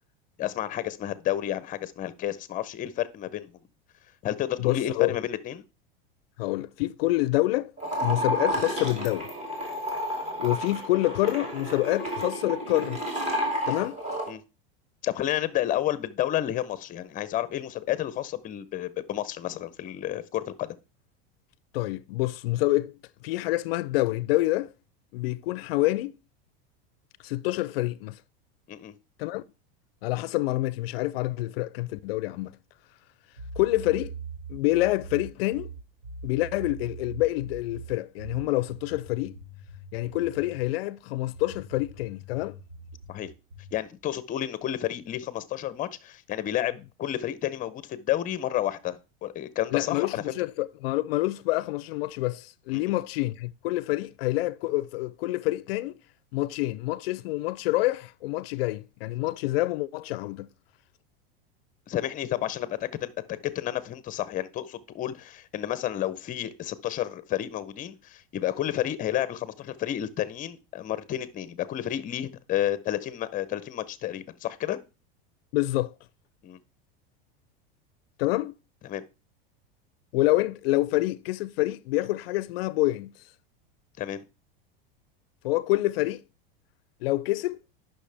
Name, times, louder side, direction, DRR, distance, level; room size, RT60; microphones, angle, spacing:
voice 1, 0.4-3.6 4.2-5.6 13.7-13.9 14.3-14.4 15.0-20.8 28.7-28.9 43.1-43.3 43.7-50.3 52.7-52.9 61.9-74.8 76.4-76.6 78.8-79.0 84.0-84.2, left 12 dB, 30° left, 0.6 m, -31 dB
voice 2, 4.6-5.2 6.4-7.7 8.0-9.3 10.4-13.0 13.7-14.0 21.7-22.9 23.2-24.7 25.1-26.2 27.2-28.2 29.2-29.4 30.0-32.5 33.6-34.1 34.5-35.7 36.2-39.4 39.9-42.6 49.7-56.0 56.3-60.5 75.5-75.9 78.2-78.5 80.1-83.1 85.4-86.2 87.0-87.6, left 18 dB, 75° left, 0.4 m, -27 dB
sound 1, 7.8-14.3, equal, 25° right, 2.6 m, -31 dB
sound 2, 33.4-40.7 41.3-43.8, right 3 dB, 90° right, 2.0 m, -42 dB
9.9 x 5.7 x 3.4 m
supercardioid pair, 130°, 30 cm